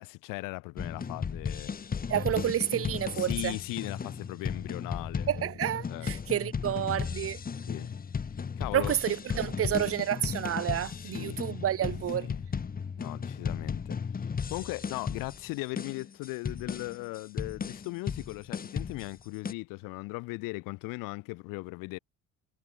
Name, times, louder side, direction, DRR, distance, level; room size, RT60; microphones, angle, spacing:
voice 1, 0.0-1.7 3.1-5.3 5.9-6.1 7.7-7.9 8.6-8.9 11.0-11.4 12.2-12.4 13.0-14.0 14.5-22.0, left 24 dB, 85° left, 4.1 m, -38 dB
sound 1, 0.8-19.5, left 6 dB, 25° left, 4.7 m, -35 dB
voice 2, 2.1-3.5 5.3-7.4 8.7-12.3, right 11 dB, 45° right, 1.8 m, -30 dB
cardioid pair, 130°, 32 cm